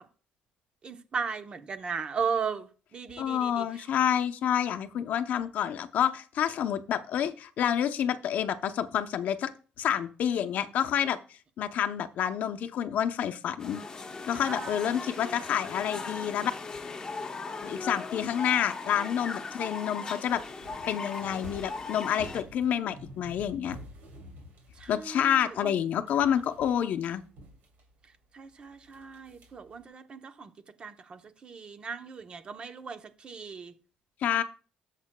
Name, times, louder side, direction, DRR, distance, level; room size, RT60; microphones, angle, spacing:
voice 1, 0.8-3.7 14.4-15.2 24.8-25.8 28.3-30.5 30.8-33.7, right 6 dB, 30° right, 0.7 m, -37 dB
voice 2, 3.2-9.5 9.8-11.2 11.6-13.8 14.2-16.5 17.6-20.4 20.9-23.8 24.9-27.2 34.2-34.4, left 9 dB, 55° left, 0.7 m, -28 dB
sound 1, 13.6-22.4, left 4 dB, 25° left, 0.9 m, -38 dB
sound 2, 20.2-25.8 26.1-28.2 28.6-29.9, right 1 dB, 65° right, 2.6 m, -49 dB
13.0 x 7.4 x 2.2 m
cardioid pair, 150°, 3 cm